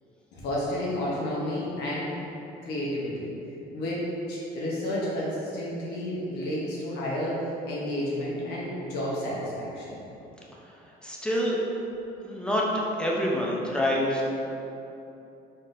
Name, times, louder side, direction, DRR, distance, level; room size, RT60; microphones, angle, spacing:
voice 1, 0.3-2.1 2.6-3.3 3.7-10.0, left 1 dB, 70° left, -6 dB, 0.9 m, -31 dB
voice 2, 11.0-11.6 12.2-12.6 13.0-14.4, left 1 dB, 5° left, -4 dB, 0.5 m, -26 dB
4.1 x 3.8 x 2.5 m, 2.9 s
cardioid pair, 135°, 18 cm